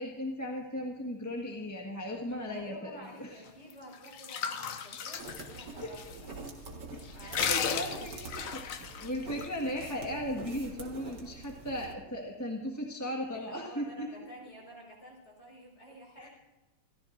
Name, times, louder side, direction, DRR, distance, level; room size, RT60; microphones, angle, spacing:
voice 1, 0.0-3.0 5.8-5.9 7.2-8.7 9.0-14.1 16.2-16.3, equal, 10° left, -1 dB, 1.4 m, -36 dB
voice 2, 2.1-6.3 7.1-8.5 13.3-16.3, equal, 30° left, -2 dB, 5.5 m, -51 dB
sound 1, 3.7-6.1 6.5-6.6 7.0-9.5, left 7 dB, 60° left, 0.9 m, -35 dB
sound 2, 5.2-11.9, right 3 dB, 55° right, 2.3 m, -45 dB
28.0 x 14.5 x 2.6 m, 1.2 s
omnidirectional pair, 2.3 m